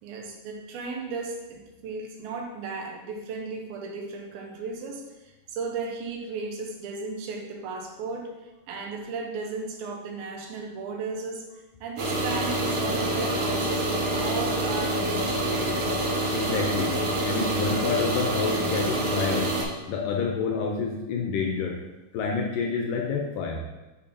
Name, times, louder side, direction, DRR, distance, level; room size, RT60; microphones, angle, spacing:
voice 1, 0.0-15.9, right 4 dB, 85° right, 1 dB, 2.7 m, -35 dB
sound 1, 12.0-19.6, right 1 dB, 55° right, 2.0 m, -26 dB
voice 2, 16.3-17.0 17.2-19.5 19.9-21.8 22.1-23.6, left 5 dB, 80° left, 1 dB, 2.1 m, -28 dB
8.7 x 5.3 x 2.8 m, 1.1 s
omnidirectional pair, 4.3 m